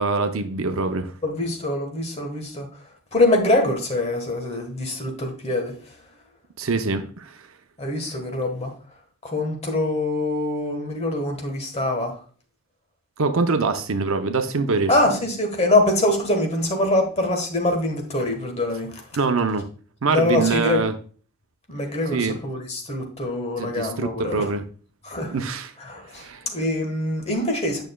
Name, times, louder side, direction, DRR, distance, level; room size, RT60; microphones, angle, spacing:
voice 1, 0.0-1.1 6.6-7.3 13.2-14.9 19.1-19.6 20.0-20.9 22.1-22.4 23.6-24.6 25.3-25.7 26.1-26.4, right 4 dB, 65° right, 0.6 m, -24 dB
voice 2, 1.2-2.7 3.1-5.9 7.8-8.7 9.2-12.2 14.9-19.0 20.1-20.8 21.7-24.5 25.0-25.4 25.8-27.8, left 2 dB, 30° left, 1.3 m, -24 dB
9.0 x 6.1 x 2.3 m
head